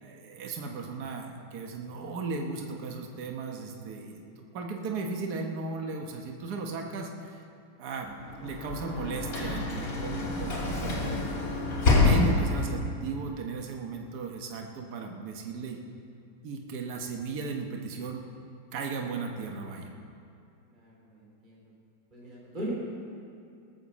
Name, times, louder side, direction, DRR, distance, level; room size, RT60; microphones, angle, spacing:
voice 1, 0.0-7.4 7.8-11.3 11.9-15.8 16.4-18.2 18.7-19.9, right 3 dB, 60° right, 2 dB, 1.6 m, -36 dB
Sliding door / Slam, 8.2-12.9, left 2 dB, 50° left, 2.5 m, -27 dB
voice 2, 20.7-21.6 22.1-22.7, equal, 25° right, -5 dB, 3.1 m, -40 dB
19.0 x 7.2 x 7.2 m, 2.6 s
omnidirectional pair, 2.0 m